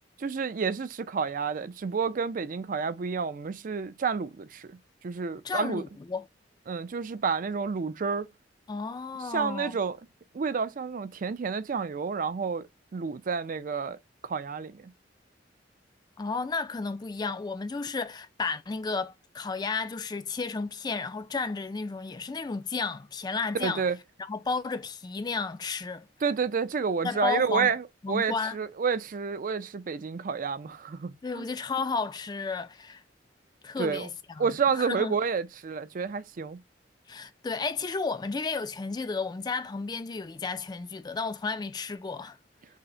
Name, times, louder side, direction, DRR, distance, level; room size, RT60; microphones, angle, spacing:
voice 1, 0.2-4.8 5.0-5.8 6.7-8.3 9.3-10.0 10.3-14.0 14.2-14.9 23.5-24.0 26.2-31.4 33.8-34.1 34.4-36.6, right 5 dB, 45° right, 0.4 m, -30 dB
voice 2, 5.4-6.3 8.7-9.7 16.2-23.8 24.3-26.1 27.0-27.7 28.0-28.6 31.2-33.0 33.6-34.5 34.7-35.2 37.1-42.4, left 4 dB, 20° left, 0.3 m, -32 dB
5.5 x 2.1 x 3.7 m
head